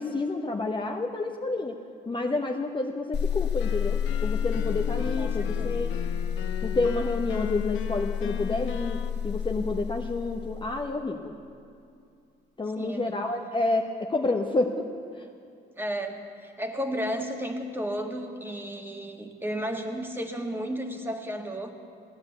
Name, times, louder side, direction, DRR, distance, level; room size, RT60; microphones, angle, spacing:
voice 1, 0.0-1.8 2.1-5.9 6.6-11.3 12.6-14.9 15.1-15.3, left 2 dB, 25° left, 2 dB, 0.9 m, -29 dB
sound 1, 3.1-10.9, left 8 dB, 60° left, 1.2 m, -30 dB
sound 2, 3.6-9.1, left 8 dB, 85° left, 0.9 m, -38 dB
voice 2, 5.2-5.8 12.8-13.3 15.7-21.7, equal, 10° right, 3 dB, 1.8 m, -33 dB
16.5 x 10.5 x 8.1 m, 2.4 s
cardioid pair, 90°, 20 cm